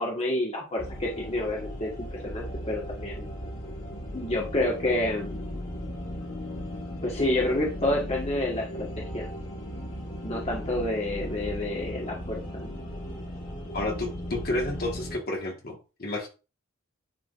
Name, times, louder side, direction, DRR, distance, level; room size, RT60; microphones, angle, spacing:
voice 1, 0.0-3.3 4.1-5.5 7.0-9.3 10.2-12.7, left 1 dB, 30° left, -2 dB, 1.5 m, -29 dB
sound 1, 0.8-15.2, equal, 80° left, 2.3 m, -37 dB
voice 2, 13.7-16.3, left 2 dB, 50° left, 0 dB, 1.6 m, -31 dB
10.0 x 3.7 x 2.5 m, 0.32 s
head